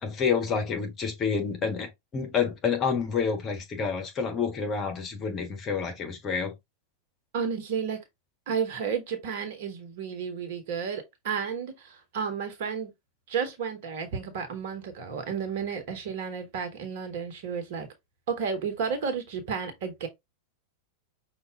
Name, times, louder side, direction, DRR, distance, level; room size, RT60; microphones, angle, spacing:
voice 1, 0.0-6.5, left 6 dB, 30° left, 1.4 m, -28 dB
voice 2, 7.3-8.0 8.5-12.9 13.3-17.9 18.3-20.1, right 6 dB, 50° right, 1.3 m, -32 dB
5.7 x 2.6 x 3.6 m
figure-of-eight pair, 90°, 0 cm